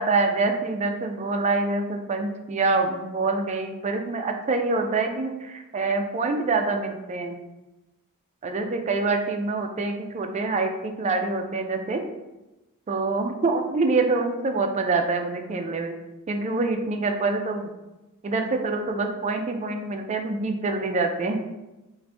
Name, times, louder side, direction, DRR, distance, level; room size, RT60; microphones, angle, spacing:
voice 1, 0.0-7.4 8.4-12.0 12.9-15.9 16.3-17.7 18.2-21.5, right 3 dB, 30° right, 5 dB, 0.4 m, -25 dB
3.9 x 2.5 x 3.3 m, 1.0 s
head